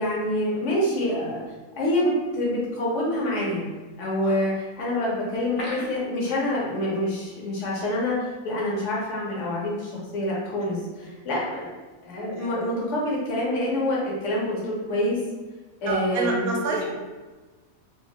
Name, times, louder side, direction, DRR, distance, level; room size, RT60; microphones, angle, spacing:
voice 1, 0.0-1.4 1.8-3.7 4.0-8.2 8.4-11.7 12.0-15.2 15.8-16.5, left 1 dB, 60° left, -4 dB, 1.1 m, -26 dB
sound 1, 5.3-7.0 7.3-7.4 7.8-8.0, left 1 dB, 45° left, 0.9 m, -37 dB
voice 2, 15.9-16.9, right 2 dB, 85° right, 0 dB, 1.1 m, -28 dB
3.3 x 2.4 x 2.8 m, 1.3 s
omnidirectional pair, 1.5 m